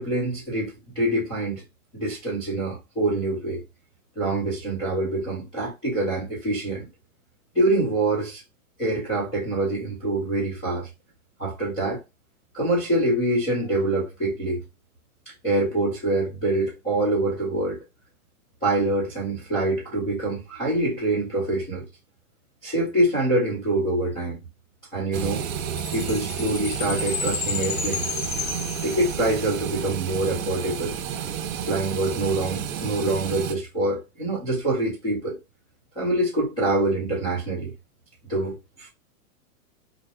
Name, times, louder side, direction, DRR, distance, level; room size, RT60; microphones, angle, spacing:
voice 1, 0.0-1.6 1.9-3.6 4.2-6.9 7.5-8.4 8.8-10.9 11.4-12.0 12.5-14.6 15.4-17.8 18.6-21.8 22.6-24.4 24.9-25.4 25.9-28.1 28.8-31.0 31.7-35.4 36.0-37.7 38.3-38.9, right 1 dB, 10° left, 0.9 m, -25 dB
toilet flushing and water refill, 25.1-33.6, right 8 dB, 70° right, 0.6 m, -31 dB
Chime, 25.8-29.5, left 7 dB, 75° left, 0.7 m, -32 dB
2.9 x 2.0 x 3.2 m
supercardioid pair, 180°, 42 cm